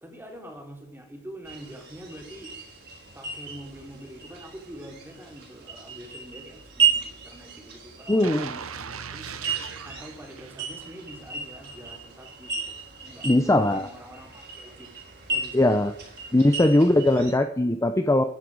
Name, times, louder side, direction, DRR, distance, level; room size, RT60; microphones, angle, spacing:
voice 1, 0.0-2.5 3.1-9.3 9.8-12.7 13.0-14.9 15.3-15.9, equal, 10° right, 1 dB, 3.2 m, -45 dB
sound 1, 1.4-17.3, right 6 dB, 55° right, 4.2 m, -34 dB
voice 2, 8.1-8.5 13.2-13.9 15.5-15.9 16.3-18.2, left 1 dB, 15° left, 8 dB, 0.6 m, -20 dB
sound 2, 8.2-11.2 11.6-11.7, right 6 dB, 85° right, 0.9 m, -39 dB
14.0 x 10.0 x 4.8 m, 0.77 s
head